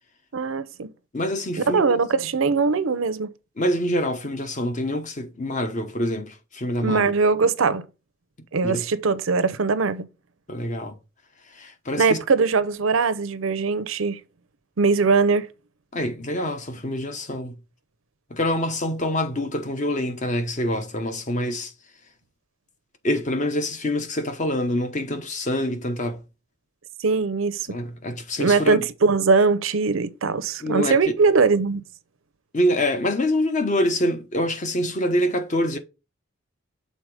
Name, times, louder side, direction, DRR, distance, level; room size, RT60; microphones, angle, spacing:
voice 1, 0.3-0.9 1.7-3.3 6.8-7.8 8.5-10.1 12.0-14.2 14.8-15.5 27.0-27.8 28.4-31.8, right 4 dB, 75° right, 0.6 m, -21 dB
voice 2, 1.1-2.0 3.6-7.1 8.6-8.8 10.5-11.0 11.5-12.2 15.9-17.6 18.3-21.7 23.0-26.2 27.7-28.8 30.6-31.0 32.5-35.8, left 1 dB, 35° left, 0.9 m, -25 dB
6.5 x 3.9 x 4.8 m
head